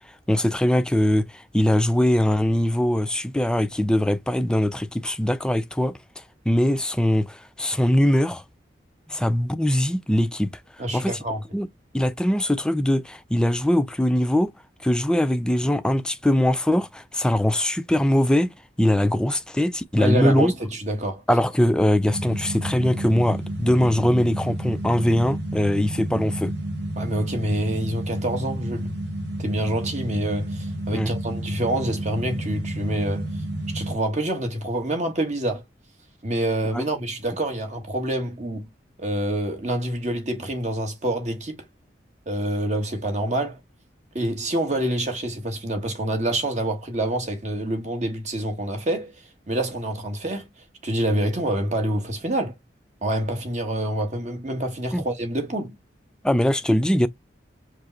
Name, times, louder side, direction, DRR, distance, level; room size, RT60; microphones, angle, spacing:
voice 1, 0.3-6.0 6.5-8.4 9.1-10.5 10.9-11.2 11.5-11.7 11.9-14.5 14.8-20.5 21.3-26.5 30.9-31.1 36.7-36.8 54.9-55.0 56.2-57.1, left 1 dB, 5° left, 0.3 m, -21 dB
voice 2, 10.8-11.4 20.0-21.2 27.0-28.9 29.4-33.3 33.7-35.6 36.2-38.7 39.0-41.6 42.3-43.6 44.1-49.1 49.5-50.4 50.8-52.5 53.0-55.7, right 1 dB, 40° right, 1.2 m, -26 dB
sound 1, 22.1-33.9, right 1 dB, 65° right, 1.3 m, -31 dB
4.9 x 2.0 x 3.9 m
head